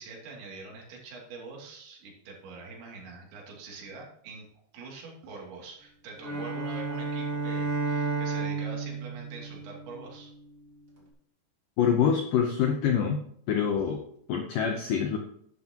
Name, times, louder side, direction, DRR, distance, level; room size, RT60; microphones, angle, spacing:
voice 1, 0.0-4.5 4.7-10.3, right 4 dB, 80° right, -1 dB, 5.0 m, -44 dB
Bowed string instrument, 6.2-10.4, right 4 dB, 25° right, 1.9 m, -32 dB
voice 2, 11.8-13.2 13.5-14.0 14.3-15.2, left 7 dB, 85° left, 3 dB, 1.9 m, -25 dB
11.5 x 10.5 x 3.0 m, 0.67 s
omnidirectional pair, 5.1 m